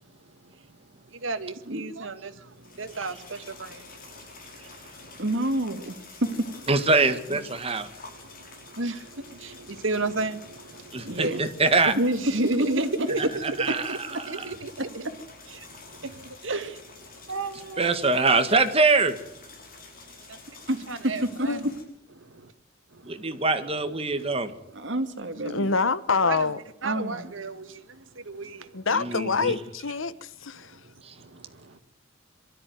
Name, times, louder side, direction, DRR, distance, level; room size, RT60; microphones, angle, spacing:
voice 1, 0.0-5.2 8.0-11.3 11.8-15.0 15.5-16.8 17.1-18.1 20.2-20.6 20.9-21.6 22.2-22.5 22.9-23.5 24.0-24.4 24.7-24.8 25.5-25.6 26.2-26.5 26.8-28.9 30.5-31.8, right 2 dB, 80° right, 1.8 m, -34 dB
sound 1, 2.5-21.8, left 3 dB, 45° left, 5.9 m, -48 dB
voice 2, 5.2-6.0 6.2-6.5 7.3-7.4 11.0-11.4 12.8-13.1 16.5-16.7 20.7-20.8 21.4-21.7 24.7-25.7 26.8-27.3, right 1 dB, 65° right, 2.5 m, -28 dB
voice 3, 6.7-7.9 10.9-11.9 13.6-14.5 17.8-19.2 23.0-24.5 28.9-29.6 31.0-31.1, right 3 dB, 30° right, 1.8 m, -23 dB
voice 4, 25.4-26.6 28.7-30.8, left 4 dB, 85° left, 1.2 m, -26 dB
23.5 x 13.5 x 9.4 m
head